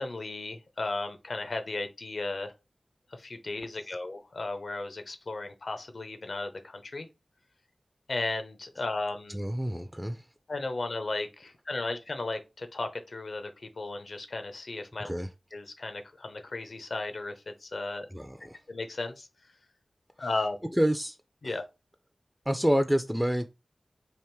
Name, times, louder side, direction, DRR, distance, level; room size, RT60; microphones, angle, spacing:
voice 1, 0.0-2.5 3.1-7.1 8.1-9.4 10.5-15.1 15.5-18.1 18.7-19.3 20.2-20.7 21.4-21.6, left 2 dB, 70° left, 0.7 m, -35 dB
voice 2, 9.3-10.2 15.0-15.3 18.1-18.6 20.8-21.2 22.5-23.5, equal, 5° right, 0.4 m, -27 dB
3.5 x 2.6 x 4.5 m
cardioid pair, 40°, 0 cm